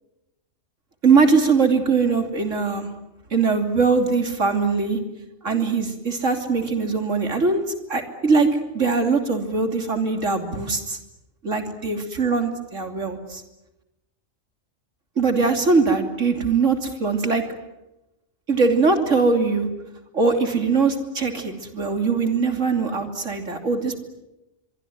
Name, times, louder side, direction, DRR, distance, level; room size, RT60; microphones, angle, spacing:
voice 1, 1.0-2.9 3.3-5.0 5.4-7.6 7.9-11.0 11.4-13.4 15.2-17.4 18.5-19.7 20.1-24.0, right 4 dB, 65° right, 6 dB, 3.3 m, -21 dB
25.0 x 23.5 x 9.3 m, 0.95 s
omnidirectional pair, 1.4 m